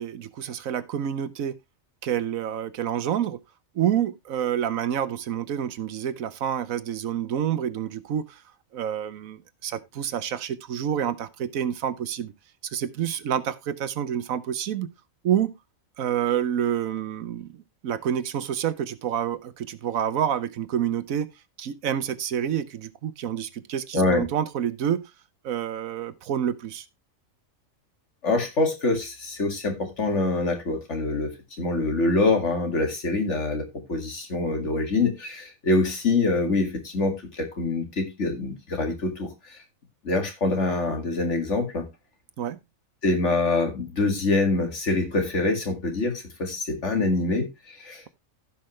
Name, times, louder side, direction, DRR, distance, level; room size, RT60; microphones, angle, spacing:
voice 1, 0.0-1.6 2.0-3.4 3.7-8.4 8.7-12.3 12.6-14.9 15.2-15.5 16.0-21.3 21.6-25.0 25.4-26.8 42.4-42.6, right 9 dB, 90° right, 1.3 m, -28 dB
voice 2, 23.9-24.2 28.2-31.3 31.6-39.3 40.0-41.8 43.0-48.1, left 3 dB, 60° left, 2.5 m, -25 dB
15.5 x 5.7 x 3.1 m
omnidirectional pair, 1.4 m